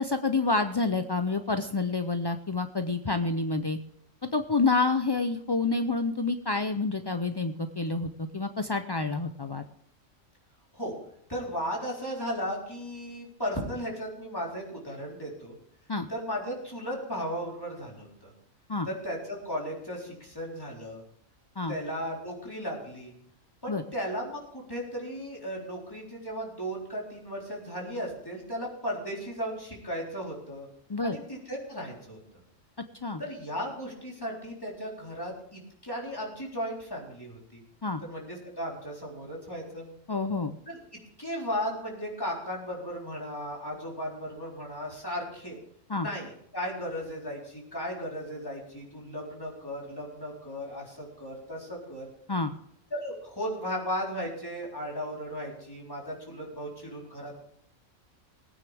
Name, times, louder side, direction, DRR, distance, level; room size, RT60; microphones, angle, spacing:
voice 1, 0.0-3.8 4.3-9.6 15.9-16.1 18.7-18.9 21.6-21.7 23.7-23.8 30.9-31.2 33.0-33.2 37.8-38.0 40.1-40.5 45.9-46.1 52.3-52.5, left 3 dB, 40° left, 8 dB, 0.3 m, -28 dB
voice 2, 11.3-15.6 16.1-18.3 18.8-21.0 21.7-23.1 23.6-30.7 31.0-32.2 33.2-37.6 38.0-39.9 40.7-40.8 41.2-45.6 46.0-52.1 52.9-57.4, equal, 15° left, -3 dB, 4.0 m, -36 dB
20.5 x 9.4 x 3.5 m, 0.70 s
omnidirectional pair, 1.4 m